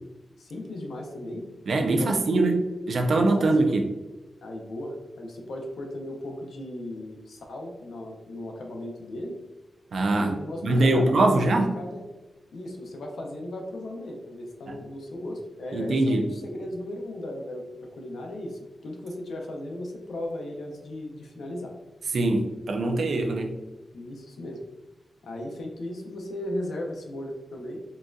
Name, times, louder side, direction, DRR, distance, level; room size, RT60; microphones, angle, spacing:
voice 1, 0.4-1.5 1.8-2.5 3.1-3.5 4.4-9.4 10.1-12.0 12.5-21.7 23.9-24.6 25.2-27.8, left 1 dB, 85° left, 1 dB, 0.6 m, -36 dB
voice 2, 1.7-3.8 9.9-10.4 10.6-11.8 14.7-14.8 15.7-16.2 22.1-23.5, right 2 dB, 70° right, 3 dB, 0.4 m, -23 dB
3.9 x 2.3 x 2.5 m, 1.1 s
wide cardioid pair, 135°, 0 cm